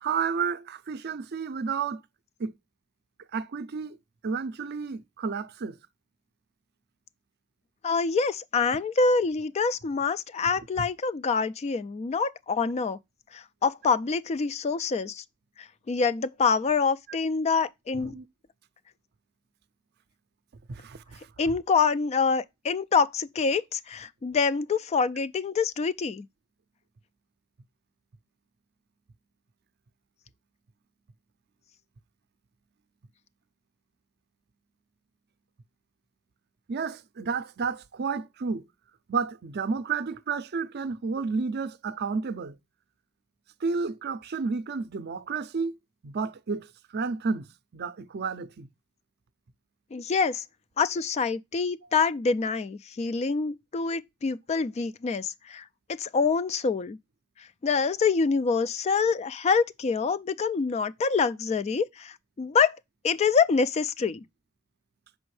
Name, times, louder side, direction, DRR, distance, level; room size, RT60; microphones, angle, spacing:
voice 1, 0.0-2.0 2.4-2.5 3.3-4.0 4.2-5.8 18.0-18.2 20.7-21.2 36.7-38.6 39.1-42.6 43.6-45.7 46.0-47.5 47.7-48.7, right 5 dB, 55° right, 0.5 m, -31 dB
voice 2, 7.8-13.0 13.3-15.2 15.9-18.2 21.4-26.2 49.9-50.4 50.8-55.6 56.0-57.0 57.6-62.8 63.0-64.2, left 5 dB, 30° left, 0.3 m, -26 dB
6.2 x 5.1 x 3.1 m
head